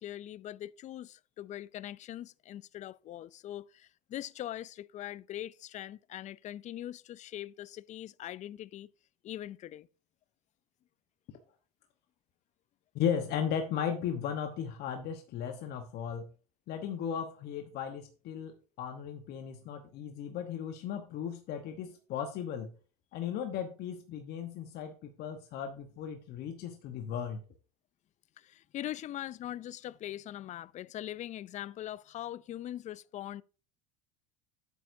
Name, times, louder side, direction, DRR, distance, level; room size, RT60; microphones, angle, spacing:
voice 1, 0.0-8.9 9.2-9.9 28.4-33.4, left 12 dB, 40° left, 0.4 m, -42 dB
voice 2, 12.9-16.3 16.7-22.7 23.1-27.4, left 8 dB, 55° left, 1.1 m, -36 dB
11.0 x 8.2 x 2.7 m
supercardioid pair, 90°, 20 cm